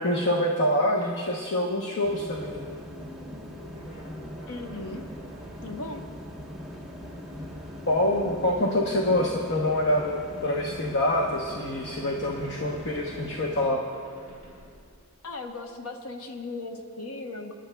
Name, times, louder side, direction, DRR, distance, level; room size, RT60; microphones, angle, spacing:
voice 1, 0.0-2.7 7.9-13.8, left 1 dB, 55° left, 0 dB, 0.9 m, -26 dB
sound 1, 1.0-15.7, left 1 dB, 40° left, 2.9 m, -49 dB
sound 2, 2.0-13.7, equal, 5° right, 1.1 m, -41 dB
voice 2, 4.5-5.0 5.6-6.0 15.2-17.5, left 2 dB, 90° left, 4 dB, 1.0 m, -37 dB
28.0 x 10.5 x 2.3 m, 2.1 s
head